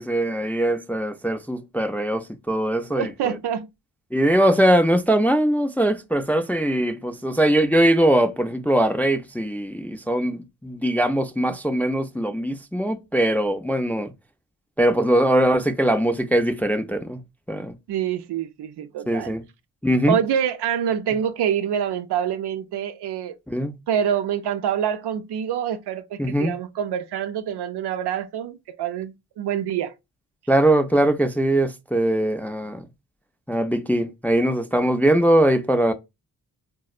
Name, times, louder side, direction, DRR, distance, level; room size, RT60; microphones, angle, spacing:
voice 1, 0.0-3.4 4.1-14.1 14.8-17.2 17.5-17.7 19.1-19.4 19.8-20.2 23.5-23.8 26.2-26.5 30.5-32.8 33.5-35.9, right 1 dB, 5° left, 0.4 m, -21 dB
voice 2, 2.9-3.7 17.9-19.4 20.1-23.4 23.9-30.0, right 9 dB, 65° right, 0.6 m, -26 dB
4.1 x 2.1 x 2.4 m
supercardioid pair, 50°, 42 cm